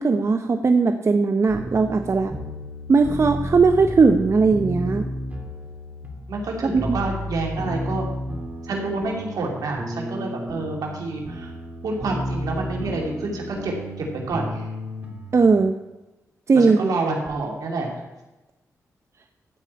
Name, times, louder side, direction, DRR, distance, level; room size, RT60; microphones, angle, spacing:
voice 1, 0.0-2.3 2.9-5.0 6.7-7.0 15.3-15.7 16.5-16.8, right 4 dB, 50° right, 7 dB, 0.8 m, -18 dB
sound 1, 1.5-15.6, equal, 25° right, 2.9 m, -32 dB
voice 2, 6.3-8.0 8.6-11.5 11.8-14.7 16.5-18.0, right 2 dB, 80° right, 0 dB, 2.8 m, -28 dB
14.0 x 5.0 x 8.5 m, 1.0 s
cardioid pair, 55°, 6 cm